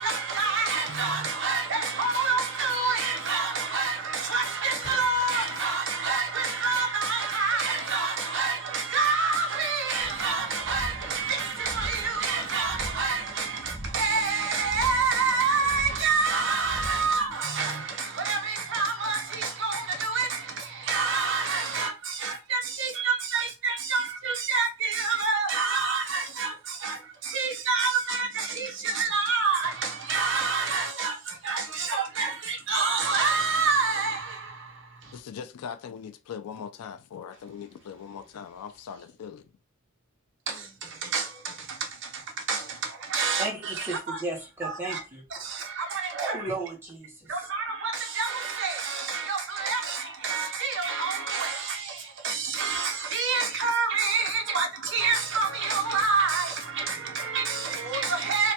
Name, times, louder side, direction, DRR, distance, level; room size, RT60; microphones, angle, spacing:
voice 1, 0.0-20.4 20.9-26.5 26.8-27.0 27.3-31.1 31.4-34.3 41.1-41.2 42.5-42.6 43.1-44.2 44.6-45.0 45.9-46.4 47.3-51.8 52.2-54.7 54.9-58.5, right 4 dB, 55° right, 0.6 m, -27 dB
sound 1, 4.7-6.6, left 1 dB, 60° left, 1.1 m, -49 dB
sound 2, 10.0-17.3, equal, 35° left, 0.7 m, -42 dB
voice 2, 35.1-39.5, left 7 dB, 90° left, 0.4 m, -40 dB
voice 3, 43.4-45.2 46.1-47.3, right 2 dB, 10° right, 0.7 m, -34 dB
3.2 x 2.2 x 2.8 m
head